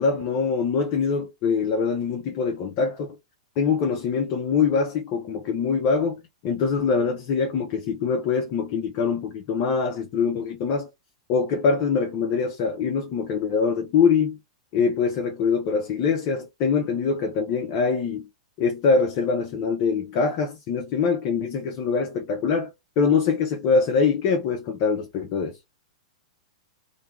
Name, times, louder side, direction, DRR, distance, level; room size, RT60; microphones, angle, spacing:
voice 1, 0.0-3.1 3.6-10.9 11.3-14.4 14.7-18.3 18.6-25.6, left 5 dB, 40° left, 0.6 m, -24 dB
2.5 x 2.2 x 3.4 m
hypercardioid pair, 110°, 4 cm